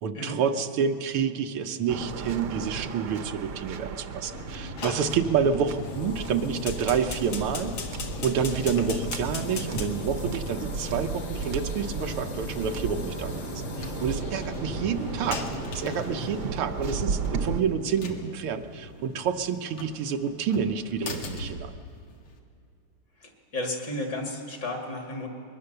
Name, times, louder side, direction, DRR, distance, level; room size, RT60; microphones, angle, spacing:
voice 1, 0.0-7.8 8.2-15.4 15.7-21.8, right 6 dB, 85° right, 6 dB, 1.9 m, -28 dB
Waves surf, 1.9-17.6, right 6 dB, 60° right, 1.3 m, -36 dB
sound 1, 4.3-22.4, left 2 dB, 85° left, 2.6 m, -39 dB
Fire, 4.8-16.4, left 5 dB, 70° left, 2.2 m, -41 dB
voice 2, 23.2-25.3, left 1 dB, 55° left, 1 dB, 3.1 m, -33 dB
22.0 x 21.5 x 6.8 m, 2.5 s
omnidirectional pair, 2.4 m